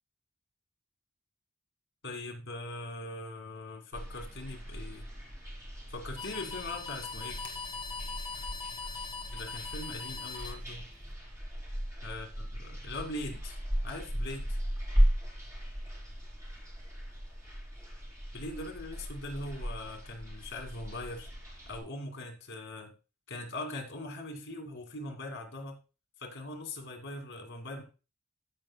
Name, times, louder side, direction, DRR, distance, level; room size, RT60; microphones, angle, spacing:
voice 1, 2.0-5.1 5.9-7.4 9.3-10.8 12.0-13.6 13.8-14.6 18.3-21.3 21.7-22.9 23.3-25.8 26.2-27.8, left 2 dB, 60° left, 2 dB, 2.3 m, -41 dB
sound 1, 3.9-21.8, equal, 15° right, 3.5 m, -36 dB
sound 2, 6.2-11.1, left 4 dB, 25° left, 1.8 m, -41 dB
14.0 x 7.4 x 2.3 m, 0.33 s
head